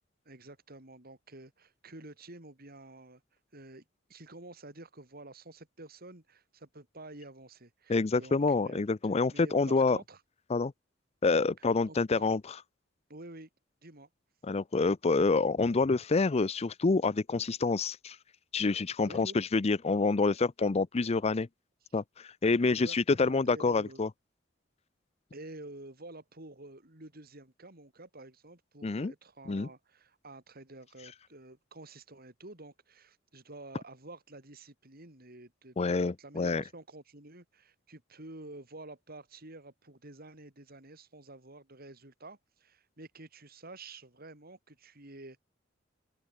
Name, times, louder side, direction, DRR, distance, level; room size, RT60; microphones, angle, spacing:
voice 1, 0.2-3.2 3.5-8.8 9.3-10.2 11.6-12.3 13.1-13.5 13.8-14.1 19.0-19.4 22.7-24.0 25.3-45.4, right 2 dB, 50° right, 4.6 m, -49 dB
voice 2, 7.9-10.0 10.5-10.7 11.2-12.4 14.4-18.2 18.5-21.5 21.9-24.1 28.8-29.1 29.5-29.7 35.8-36.6, left 3 dB, 35° left, 0.5 m, -27 dB
open air
head